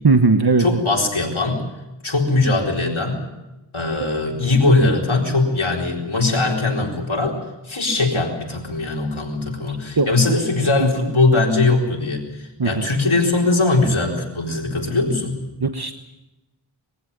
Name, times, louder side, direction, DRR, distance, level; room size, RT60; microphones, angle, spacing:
voice 1, 0.0-0.8 10.0-10.1 10.8-11.1 12.6-12.8 15.6-15.9, right 4 dB, 50° right, 8 dB, 1.3 m, -18 dB
voice 2, 0.6-1.6 2.0-3.2 3.7-7.4 7.7-15.4, left 2 dB, 85° left, 0 dB, 4.4 m, -20 dB
22.5 x 16.0 x 9.9 m, 0.98 s
wide cardioid pair, 40°, 47 cm